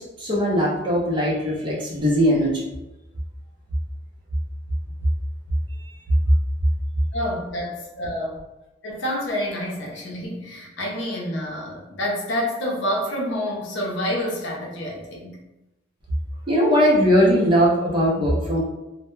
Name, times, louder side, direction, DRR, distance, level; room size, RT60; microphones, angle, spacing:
voice 1, 0.0-2.7 16.5-18.6, equal, 25° right, -5 dB, 0.5 m, -20 dB
voice 2, 7.1-8.4 8.8-15.4, equal, 65° left, -2 dB, 0.6 m, -28 dB
2.1 x 2.0 x 3.0 m, 0.95 s
head